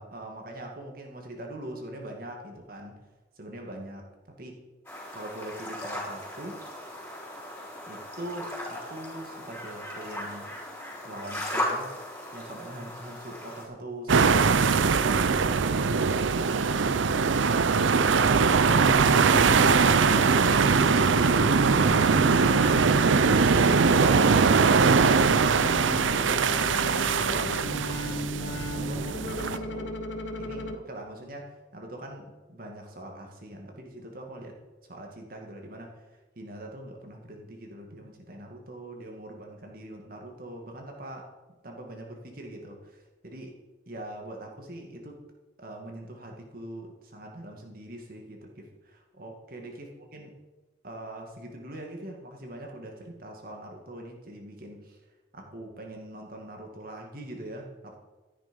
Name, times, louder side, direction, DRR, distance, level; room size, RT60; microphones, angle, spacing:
voice 1, 0.0-3.0 3.4-4.1 4.4-4.6 5.1-6.6 7.9-10.5 11.0-11.9 12.3-15.9 25.0-27.5 28.0-29.9 30.4-34.6 34.9-36.0 36.4-41.3 41.6-43.6 43.9-45.2 45.6-50.3 50.8-55.0 55.3-58.0, right 1 dB, 50° right, 1 dB, 2.0 m, -42 dB
sound 1, 4.8-13.6, left 1 dB, 10° left, 4.1 m, -37 dB
sound 2, 14.1-29.6, right 5 dB, 80° right, 0.6 m, -22 dB
sound 3, 18.7-30.7, left 1 dB, 70° left, 1.1 m, -35 dB
13.0 x 10.5 x 5.3 m, 1.2 s
head